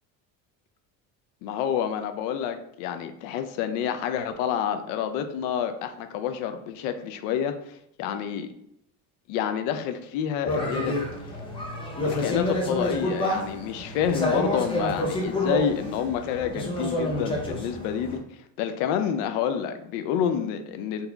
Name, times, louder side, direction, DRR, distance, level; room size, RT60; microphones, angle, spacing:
voice 1, 1.4-8.5 9.3-11.0 12.0-18.2 18.6-21.1, left 8 dB, 85° left, 8 dB, 0.5 m, -28 dB
sound 1, 10.4-18.2, left 1 dB, 15° left, 0.4 m, -29 dB
3.9 x 2.8 x 2.3 m, 0.74 s
cardioid pair, 160°, 39 cm